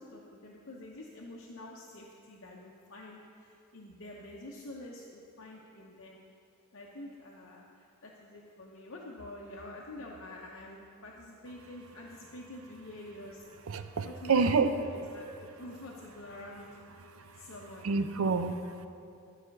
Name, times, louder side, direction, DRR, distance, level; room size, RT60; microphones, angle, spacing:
voice 1, 0.0-6.2 6.7-13.5 14.0-16.7 17.3-17.9, left 1 dB, 60° left, -2 dB, 0.8 m, -47 dB
voice 2, 13.7-14.8 17.1-17.4 17.8-18.9, right 4 dB, 75° right, 9 dB, 0.6 m, -28 dB
11.5 x 5.0 x 6.6 m, 2.6 s
head